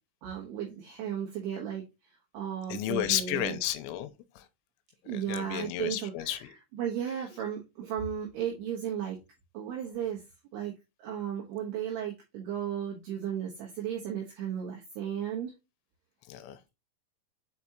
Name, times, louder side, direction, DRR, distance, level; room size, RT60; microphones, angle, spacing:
voice 1, 0.2-3.6 5.0-6.4 6.7-9.2 9.5-10.2 10.5-10.7 11.0-15.5, right 9 dB, 65° right, 3.1 m, -35 dB
voice 2, 2.7-4.5 5.1-6.5 16.3-16.6, left 13 dB, 90° left, 3.1 m, -33 dB
7.1 x 5.1 x 2.9 m
omnidirectional pair, 5.5 m